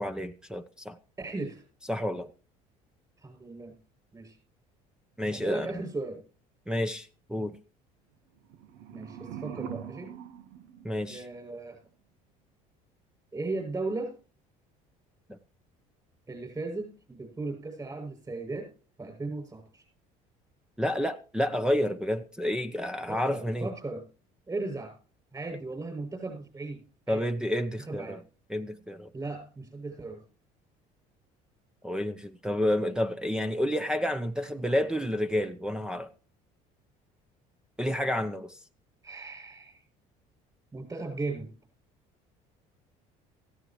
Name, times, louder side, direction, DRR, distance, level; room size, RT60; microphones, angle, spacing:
voice 1, 0.0-1.0 1.9-2.3 5.2-5.8 6.7-7.6 10.8-11.2 15.3-15.4 20.8-23.7 27.1-28.2 28.5-29.1 31.8-36.1 37.8-38.6, left 1 dB, 5° right, 0.9 m, -30 dB
voice 2, 1.2-1.6 3.2-3.7 4.1-4.4 5.3-6.2 8.9-10.1 11.1-11.8 13.3-14.1 16.3-18.7 19.0-19.8 23.1-24.0 24.5-24.9 25.3-27.2 27.8-28.2 29.1-30.2 39.0-39.8 40.7-41.5, right 3 dB, 20° right, 7.4 m, -37 dB
sound 1, 8.4-11.5, right 9 dB, 85° right, 1.4 m, -43 dB
17.0 x 15.5 x 3.2 m
supercardioid pair, 100°, 16 cm